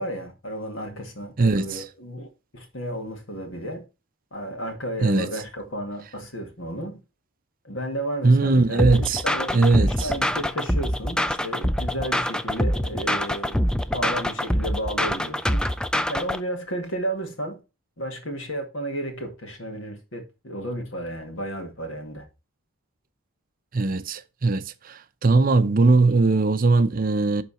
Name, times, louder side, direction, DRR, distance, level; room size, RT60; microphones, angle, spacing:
voice 1, 0.0-3.8 4.3-7.0 7.6-13.6 13.9-15.6 16.1-17.6 18.0-22.2, right 1 dB, 70° left, 2.1 m, -33 dB
voice 2, 1.4-1.8 5.0-5.3 8.2-9.2 9.5-10.1 23.7-27.4, right 3 dB, 45° right, 0.6 m, -20 dB
sound 1, 8.8-16.4, left 1 dB, 5° left, 0.4 m, -25 dB
11.0 x 3.9 x 4.2 m
head